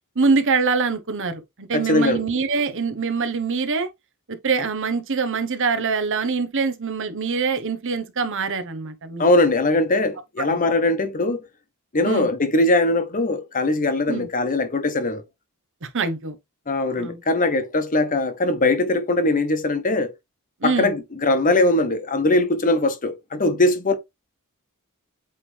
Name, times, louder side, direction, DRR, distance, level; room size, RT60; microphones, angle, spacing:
voice 1, 0.2-3.9 4.4-9.3 10.4-10.6 12.0-12.3 14.1-14.3 15.8-16.4 17.0-17.2 20.6-20.9, right 4 dB, 60° right, 1.0 m, -24 dB
voice 2, 1.7-2.2 9.2-11.5 11.9-15.2 16.7-20.1 20.6-23.9, left 2 dB, 35° left, 0.9 m, -21 dB
8.2 x 3.3 x 3.4 m
head